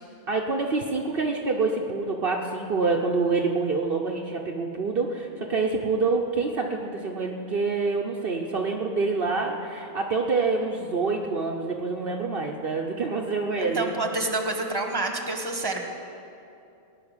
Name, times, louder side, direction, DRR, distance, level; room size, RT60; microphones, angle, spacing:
voice 1, 0.3-13.9, right 4 dB, 55° right, 1 dB, 1.0 m, -26 dB
voice 2, 13.6-15.9, right 2 dB, 20° right, 3 dB, 1.4 m, -28 dB
19.0 x 6.3 x 9.7 m, 2.7 s
omnidirectional pair, 1.2 m